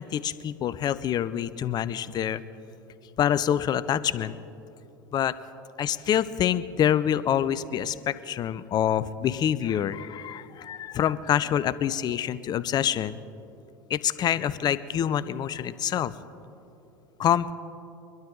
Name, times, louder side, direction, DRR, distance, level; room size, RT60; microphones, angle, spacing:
voice 1, 0.0-2.4 3.2-4.4 5.1-5.3 5.8-13.2 13.9-16.1 17.2-17.5, left 10 dB, 40° left, 16 dB, 0.6 m, -26 dB
23.0 x 12.0 x 4.0 m, 2.8 s
hypercardioid pair, 85°, 11 cm